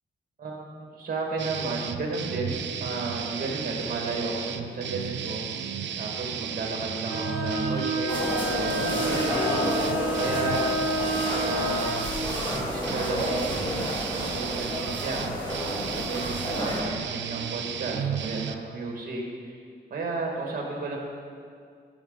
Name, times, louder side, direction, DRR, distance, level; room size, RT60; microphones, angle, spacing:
voice 1, 0.4-5.5 6.0-9.6 10.1-10.8 11.4-12.1 12.5-15.3 15.9-19.5 19.9-21.0, right 3 dB, 50° right, -1 dB, 2.1 m, -33 dB
sound 1, 1.4-18.6, right 8 dB, 75° right, 0.5 m, -34 dB
Bowed string instrument, 7.1-12.0, equal, 20° right, 2.8 m, -29 dB
sound 2, 8.1-16.8, equal, 25° left, 2.3 m, -31 dB
14.5 x 6.2 x 4.0 m, 2.1 s
wide cardioid pair, 125°, 19 cm